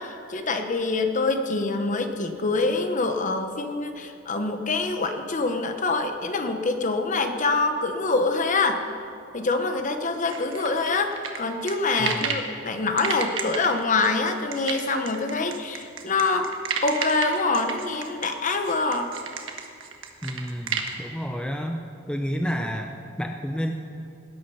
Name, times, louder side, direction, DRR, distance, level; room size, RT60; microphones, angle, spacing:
voice 1, 0.0-8.8 9.3-16.5 16.8-19.1, left 3 dB, 40° left, 6 dB, 1.0 m, -25 dB
sound 1, 10.3-12.5 13.0-20.9, right 6 dB, 80° right, 1.4 m, -32 dB
voice 2, 12.0-12.4 20.2-21.8 22.1-22.9 23.2-23.7, equal, 5° left, 3 dB, 0.6 m, -30 dB
19.0 x 9.4 x 5.7 m, 2.4 s
head